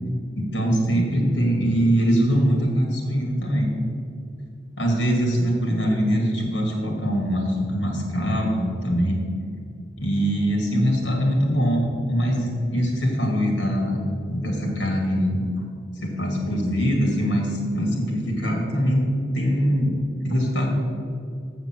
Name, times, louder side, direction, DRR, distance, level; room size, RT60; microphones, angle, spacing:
voice 1, 0.4-3.7 4.8-9.2 10.0-15.5 16.0-19.9 20.2-20.7, equal, 80° left, 0 dB, 2.3 m, -22 dB
7.0 x 6.8 x 7.5 m, 2.4 s
head